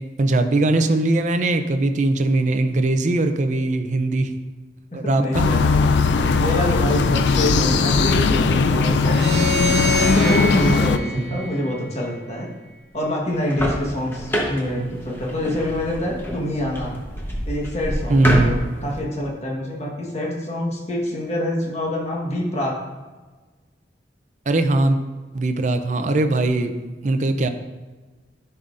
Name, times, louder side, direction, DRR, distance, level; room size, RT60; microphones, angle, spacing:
voice 1, 0.0-4.3 4.9-5.5 11.3-11.4 18.1-18.6 24.5-25.0 25.3-26.7 27.0-27.5, right 2 dB, 40° right, 8 dB, 0.5 m, -20 dB
voice 2, 4.9-5.6 6.3-9.5 10.1-12.5 12.9-16.9 17.5-22.8, left 1 dB, 35° left, -2 dB, 1.3 m, -26 dB
sound 1, 5.3-11.0, left 4 dB, 70° left, 0.4 m, -19 dB
sound 2, 9.0-12.3, left 1 dB, 60° right, 1.4 m, -26 dB
sound 3, 13.3-19.0, equal, 10° left, 1.0 m, -27 dB
10.5 x 5.5 x 2.5 m, 1.3 s
head